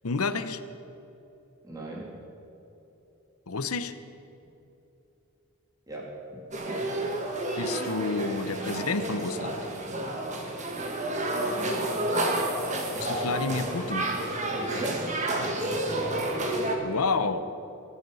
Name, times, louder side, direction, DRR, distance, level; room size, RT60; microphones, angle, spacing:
voice 1, 0.0-0.6 3.5-3.9 7.6-9.6 13.0-14.1 15.4-15.5 16.5-17.4, left 4 dB, 90° left, 12 dB, 0.8 m, -30 dB
voice 2, 1.6-2.1 5.9-6.4 12.0-12.4 14.4-15.1, right 1 dB, 15° right, -4 dB, 3.1 m, -36 dB
sound 1, 6.5-16.8, right 1 dB, 35° right, 1.6 m, -30 dB
22.5 x 8.5 x 5.5 m, 3.0 s
head